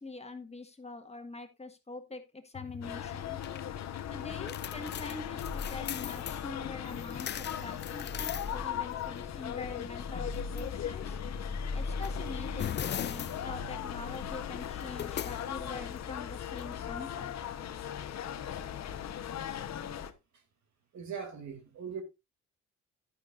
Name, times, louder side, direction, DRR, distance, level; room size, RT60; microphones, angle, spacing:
voice 1, 0.0-3.4 4.1-11.2 11.7-17.3, left 3 dB, 20° left, 1.7 m, -44 dB
sound 1, 2.5-17.3, left 10 dB, 35° left, 0.4 m, -42 dB
sound 2, 2.8-20.1, left 7 dB, 60° left, 1.1 m, -38 dB
voice 2, 20.9-22.0, right 6 dB, 70° right, 2.7 m, -40 dB
11.0 x 9.7 x 2.6 m
cardioid pair, 90°, 30 cm